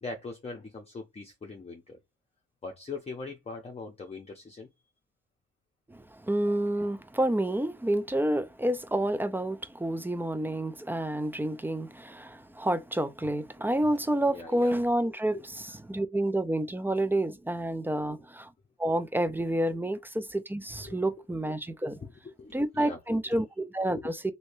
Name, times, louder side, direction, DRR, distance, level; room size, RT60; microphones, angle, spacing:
voice 1, 0.0-2.0 2.6-4.7 14.3-14.7 15.3-15.4 17.9-18.2 20.8-21.0 22.0-23.0 23.3-23.4 24.0-24.1, left 3 dB, 20° left, 0.7 m, -41 dB
voice 2, 5.9-18.5 18.8-22.0 22.5-24.2, right 1 dB, 5° right, 0.3 m, -29 dB
3.1 x 2.8 x 2.6 m
cardioid pair, 90°, 30 cm